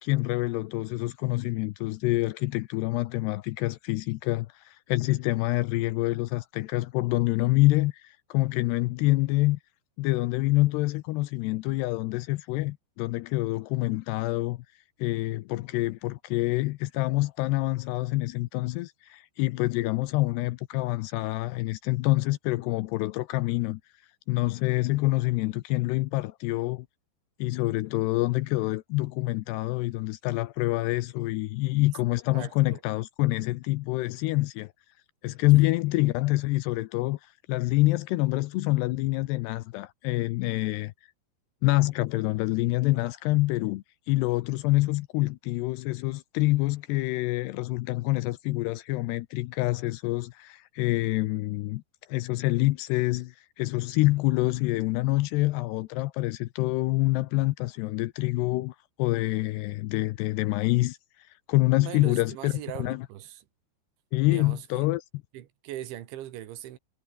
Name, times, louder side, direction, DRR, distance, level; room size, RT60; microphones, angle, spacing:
voice 1, 0.0-9.6 10.0-14.6 15.0-23.8 24.3-26.9 27.4-34.7 35.2-40.9 41.6-51.8 52.1-61.0 61.5-63.0 64.1-65.0, left 19 dB, 80° left, 2.6 m, -26 dB
voice 2, 32.3-32.8 35.5-35.6 61.8-63.5 64.3-64.9 65.3-66.8, right 13 dB, 90° right, 4.1 m, -40 dB
omnidirectional pair, 5.2 m